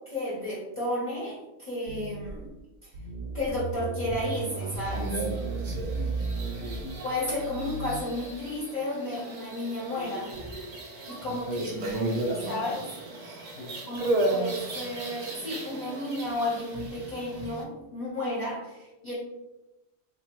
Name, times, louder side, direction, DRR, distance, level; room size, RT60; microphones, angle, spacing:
voice 1, 0.0-2.5 2.8-2.9 3.3-5.2 7.0-10.3 11.1-12.2 12.5-12.9 13.9-19.1, left 1 dB, 45° left, -7 dB, 0.8 m, -33 dB
sound 1, 1.9-2.5 2.9-8.0, right 3 dB, 85° right, 0.9 m, -35 dB
sound 2, 4.1-17.6, right 2 dB, 55° right, 0.4 m, -34 dB
voice 2, 5.7-6.2 6.6-7.0 11.2-11.6 13.5-14.2, left 3 dB, 85° left, 1 dB, 0.9 m, -45 dB
3.0 x 2.1 x 2.9 m, 1.0 s
omnidirectional pair, 1.2 m